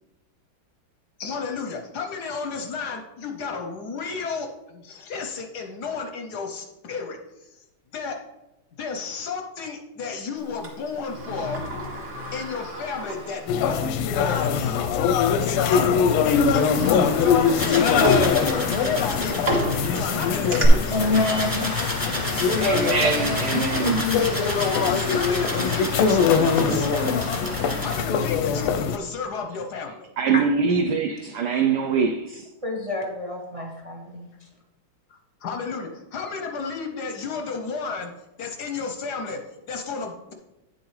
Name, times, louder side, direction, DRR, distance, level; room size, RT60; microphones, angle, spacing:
voice 1, 1.2-7.6 7.9-8.3 8.8-11.6 12.3-14.8 15.4-18.1 18.4-21.2 24.8-27.5 27.8-30.1 35.1-38.1 38.4-40.3, left 5 dB, 65° left, 1.0 m, -33 dB
Sliding door, 10.6-13.9 14.2-14.3 15.3-15.5 15.9-20.7, left 1 dB, 35° right, 1.7 m, -30 dB
sound 1, 13.5-29.0, left 6 dB, 90° left, 1.5 m, -23 dB
sound 2, 17.5-28.0, equal, 10° right, 1.1 m, -31 dB
voice 2, 20.9-21.7 22.8-23.4 30.3-30.4 32.6-34.3, left 2 dB, 55° right, 0.3 m, -27 dB
voice 3, 22.6-24.1 30.2-32.5, right 5 dB, 80° right, 0.9 m, -23 dB
9.3 x 7.2 x 3.1 m
omnidirectional pair, 2.4 m